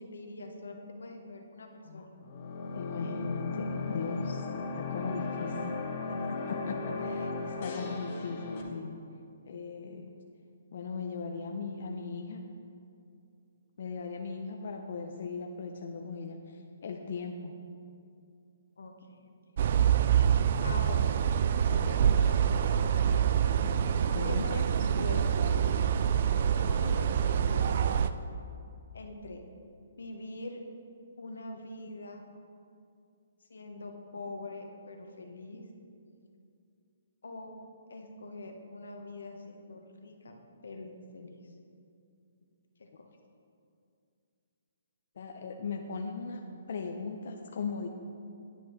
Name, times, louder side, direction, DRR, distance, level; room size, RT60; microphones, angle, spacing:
voice 1, 0.0-2.1 6.4-6.5 18.8-19.3 19.7-19.8 20.6-21.1 21.7-22.6 24.2-25.4 26.2-27.7 28.9-29.4 30.0-30.6 31.2-32.2 33.5-35.6 37.2-37.5 37.9-40.4 40.6-41.3 42.8-43.1, left 2 dB, 90° left, 4 dB, 1.1 m, -43 dB
sound 1, 2.2-8.6, left 3 dB, 45° left, 1.2 m, -36 dB
voice 2, 2.7-4.4 4.7-5.6 6.1-9.0 9.5-10.1 10.7-12.5 13.8-17.5 23.9-24.5 45.2-47.9, left 4 dB, 60° left, 3 dB, 0.6 m, -38 dB
sound 2, 19.6-28.1, right 8 dB, 50° right, 0.3 m, -26 dB
10.5 x 9.0 x 3.1 m, 2.5 s
hypercardioid pair, 155°, 0 cm